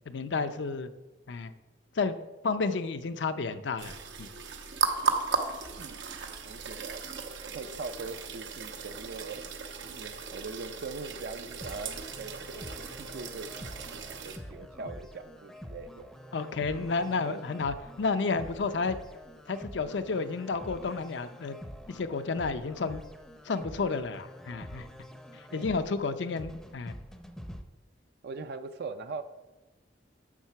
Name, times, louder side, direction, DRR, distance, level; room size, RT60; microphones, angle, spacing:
voice 1, 0.1-0.9 1.3-1.5 2.0-2.2 2.4-4.3 16.3-19.0 19.5-21.6 21.9-23.0 23.5-24.9 25.5-26.9, left 4 dB, 70° left, 11 dB, 0.5 m, -31 dB
sound 1, 3.8-14.4, right 5 dB, 85° right, 0.9 m, -36 dB
voice 2, 6.4-7.0 7.5-9.4 9.9-12.7 13.0-13.9 14.2-16.1 17.0-17.4 25.5-25.7 28.2-29.2, right 4 dB, 60° right, 10 dB, 0.4 m, -41 dB
sound 2, 11.6-27.6, equal, 5° left, 0.6 m, -46 dB
7.3 x 6.6 x 5.8 m, 1.1 s
head